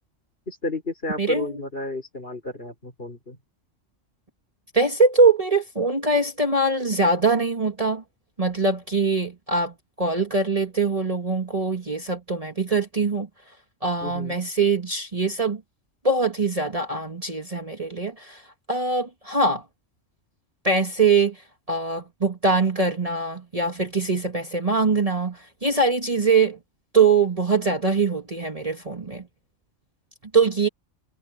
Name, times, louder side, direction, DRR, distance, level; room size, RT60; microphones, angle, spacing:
voice 1, 0.5-3.4 14.0-14.4, left 2 dB, 50° left, 5.6 m, -32 dB
voice 2, 1.2-1.6 4.7-8.0 8.4-13.3 13.8-15.6 16.0-18.4 18.7-19.6 20.6-21.4 21.7-26.6 26.9-29.2 30.3-30.7, right 3 dB, 30° right, 1.7 m, -22 dB
omnidirectional pair, 1.3 m